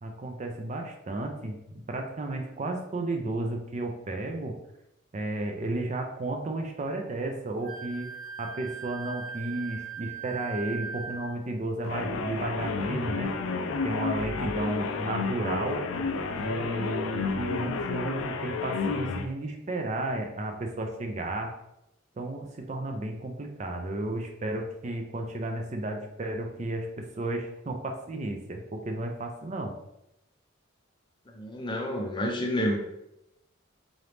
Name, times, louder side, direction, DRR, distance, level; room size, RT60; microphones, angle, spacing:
voice 1, 0.0-4.6 5.1-8.1 8.4-13.4 13.8-15.8 16.4-21.5 22.2-29.7, right 2 dB, 35° right, 3 dB, 0.4 m, -33 dB
Wind instrument woodwind instrument, 7.6-11.4, right 6 dB, 75° right, 0.6 m, -39 dB
sound 1, 11.8-19.3, left 4 dB, 80° left, 0.4 m, -31 dB
voice 2, 31.3-32.8, equal, 25° left, 1 dB, 0.5 m, -29 dB
3.8 x 2.9 x 3.3 m, 0.83 s
head